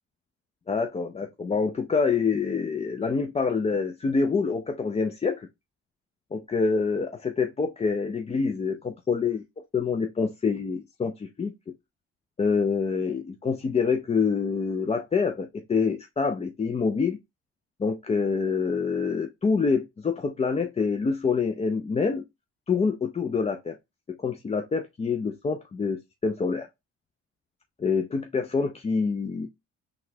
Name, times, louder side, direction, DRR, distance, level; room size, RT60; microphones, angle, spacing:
voice 1, 0.7-5.5 6.3-9.4 9.7-11.5 12.4-17.2 17.8-22.2 22.7-23.8 24.1-26.7 27.8-29.5, left 5 dB, 20° left, 0.4 m, -26 dB
3.9 x 2.3 x 2.7 m
cardioid pair, 90°, 30 cm